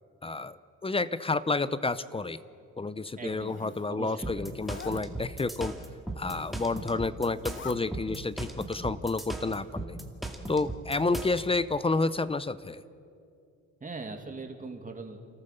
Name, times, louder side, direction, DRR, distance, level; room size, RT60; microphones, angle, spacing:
voice 1, 0.2-2.4 2.8-5.7 6.2-10.0 10.5-12.8, left 3 dB, 20° left, 16 dB, 0.7 m, -30 dB
Zipper (clothing), 3.1-3.9 4.5-5.0 6.1-6.8 7.3-7.8, left 6 dB, 40° left, 1.2 m, -46 dB
voice 2, 3.2-4.5 13.8-15.2, right 3 dB, 25° right, 4 dB, 2.5 m, -41 dB
sound 1, 4.2-11.4, right 2 dB, ahead, 2.3 m, -37 dB
29.5 x 14.0 x 6.8 m, 2.4 s
cardioid pair, 90°, 30 cm